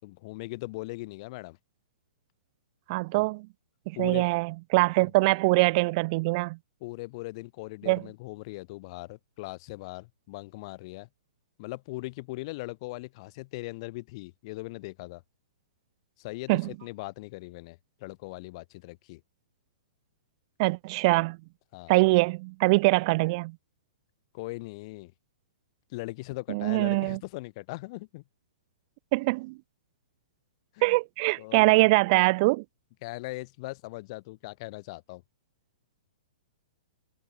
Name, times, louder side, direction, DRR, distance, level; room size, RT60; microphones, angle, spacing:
voice 1, 0.0-1.6 3.1-3.2 4.0-4.3 5.0-5.1 6.8-11.1 11.6-15.2 16.2-19.2 21.7-21.9 24.3-25.1 25.9-28.2 30.7-31.0 31.4-31.9 33.0-35.2, left 22 dB, 45° left, 4.8 m, -39 dB
voice 2, 2.9-3.5 3.9-6.6 7.9-8.0 16.5-16.7 20.6-21.4 21.9-23.5 26.5-27.2 29.1-29.6 30.8-32.6, right 24 dB, 40° right, 0.9 m, -23 dB
figure-of-eight pair, 115°, 4 cm